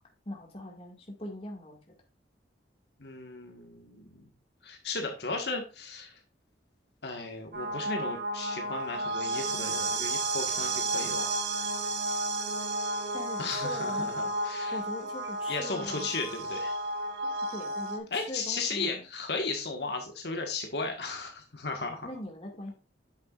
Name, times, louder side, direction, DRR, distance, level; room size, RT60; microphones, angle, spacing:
voice 1, 0.3-1.9 13.1-16.1 17.4-19.0 22.0-22.7, equal, 30° left, 1 dB, 2.0 m, -41 dB
voice 2, 3.0-4.3 4.6-6.1 7.0-11.3 13.4-14.8 15.5-16.7 18.1-22.1, left 3 dB, 65° left, 3 dB, 1.6 m, -35 dB
sound 1, 7.5-18.0, right 2 dB, 75° right, 1.8 m, -32 dB
9.0 x 7.0 x 2.5 m, 0.32 s
head